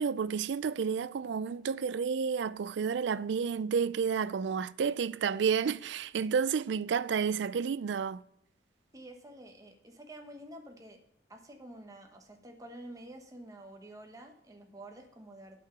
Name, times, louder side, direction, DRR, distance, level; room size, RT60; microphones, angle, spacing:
voice 1, 0.0-8.2, right 6 dB, 65° right, 0.4 m, -31 dB
voice 2, 8.9-11.0 11.3-15.6, right 1 dB, 15° right, 1.2 m, -49 dB
8.4 x 6.0 x 6.8 m
head